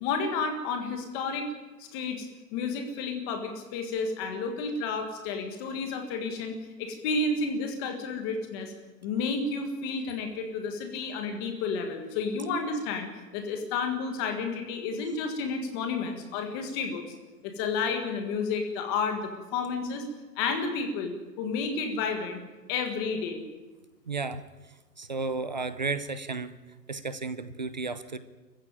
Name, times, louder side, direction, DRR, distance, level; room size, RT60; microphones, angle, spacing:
voice 1, 0.0-1.5 1.8-2.3 2.5-8.7 9.0-17.0 17.4-20.0 20.4-21.1 21.4-22.4 22.7-23.4, left 4 dB, 15° left, 6 dB, 1.7 m, -31 dB
voice 2, 24.1-24.4 25.0-26.6 26.9-28.2, right 4 dB, 30° right, 14 dB, 0.6 m, -33 dB
25.5 x 15.0 x 9.0 m, 1.2 s
hypercardioid pair, 170°, 48 cm